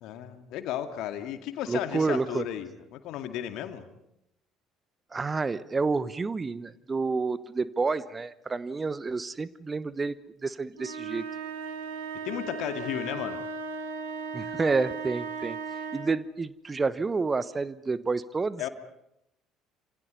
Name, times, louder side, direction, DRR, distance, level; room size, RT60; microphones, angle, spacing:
voice 1, 0.0-3.9 12.2-13.4 18.6-18.7, left 11 dB, 55° left, 7 dB, 2.3 m, -34 dB
voice 2, 1.7-2.4 5.1-11.2 14.3-15.6 15.9-18.7, right 4 dB, 25° right, 17 dB, 1.0 m, -29 dB
sound 1, 10.7-16.2, right 4 dB, 70° right, 3.3 m, -36 dB
27.5 x 26.0 x 5.5 m, 0.83 s
figure-of-eight pair, 55°, 0 cm